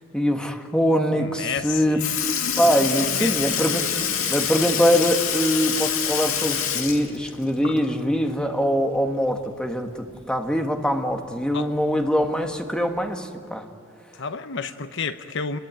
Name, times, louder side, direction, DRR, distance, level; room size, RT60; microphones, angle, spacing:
voice 1, 0.1-2.0 2.6-3.9 4.3-13.7, equal, 5° left, 4 dB, 1.6 m, -23 dB
voice 2, 1.1-2.1 3.0-3.4 11.5-11.7 14.1-15.6, left 5 dB, 60° left, 10 dB, 0.9 m, -31 dB
Sink (filling or washing) / Liquid, 1.6-1.7 2.0-8.1 8.4-8.5 10.1-10.2 11.1-11.2 12.0-12.3 13.1-13.2, left 8 dB, 85° left, 2.3 m, -26 dB
28.5 x 22.0 x 9.1 m, 2.2 s
head